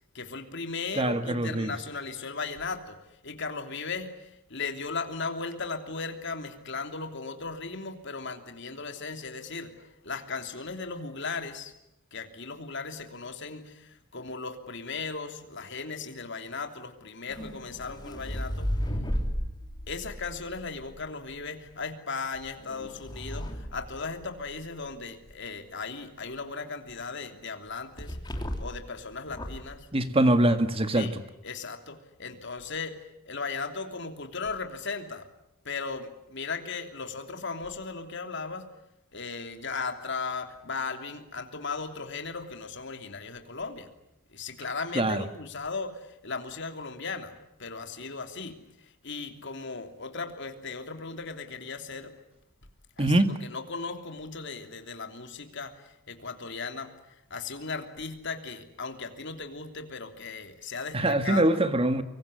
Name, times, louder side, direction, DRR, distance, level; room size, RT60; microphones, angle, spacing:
voice 1, 0.1-11.7 12.1-18.8 19.9-28.2 28.6-29.9 30.9-31.1 31.4-35.3 35.6-38.7 39.1-43.9 44.3-52.2 53.0-53.1 53.4-61.6, left 4 dB, 55° left, 3.1 m, -37 dB
voice 2, 0.9-1.7 29.9-31.2 44.9-45.2 53.0-53.3 60.9-62.0, right 1 dB, 25° right, 1.8 m, -23 dB
sound 1, 17.3-21.4 22.4-24.7 28.0-28.9 29.3-29.7, equal, 20° left, 3.1 m, -34 dB
25.0 x 23.5 x 10.0 m
head